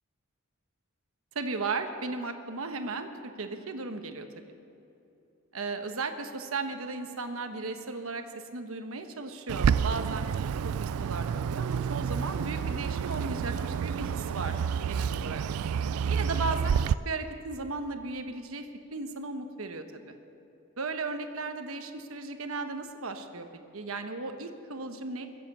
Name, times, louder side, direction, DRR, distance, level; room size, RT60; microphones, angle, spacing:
voice 1, 1.3-3.1 3.4-4.3 5.5-8.2 8.5-10.3 10.6-15.4 16.1-20.1 20.8-23.5 23.7-25.3, right 3 dB, 70° right, 7 dB, 1.1 m, -36 dB
Bird, 9.5-16.9, right 7 dB, 90° right, 0.3 m, -29 dB
22.5 x 7.6 x 7.4 m, 2.8 s
head